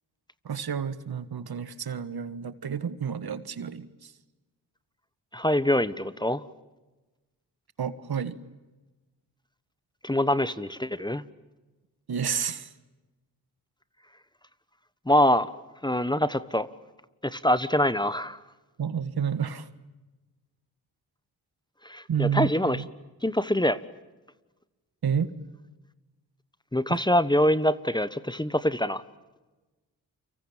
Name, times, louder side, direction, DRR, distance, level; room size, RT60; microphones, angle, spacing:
voice 1, 0.4-4.1 7.8-8.4 12.1-12.7 18.8-19.7 22.1-22.9 25.0-25.3 26.9-27.0, right 7 dB, 60° right, 13 dB, 1.6 m, -30 dB
voice 2, 5.3-6.4 10.0-11.2 15.1-15.5 15.8-16.7 17.2-18.4 21.8-22.8 23.2-23.8 26.7-29.0, left 1 dB, 10° left, 14 dB, 1.2 m, -24 dB
30.0 x 24.5 x 7.4 m, 1.1 s
supercardioid pair, 40°, 42 cm